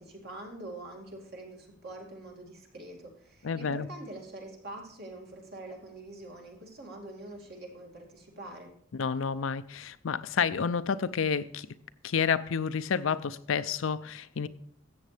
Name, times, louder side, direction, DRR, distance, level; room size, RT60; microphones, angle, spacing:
voice 1, 0.0-8.7, right 2 dB, 55° right, 2.4 m, -45 dB
voice 2, 3.4-3.9 8.9-11.7 12.0-14.5, left 6 dB, 80° left, 0.5 m, -30 dB
14.0 x 7.8 x 3.4 m
head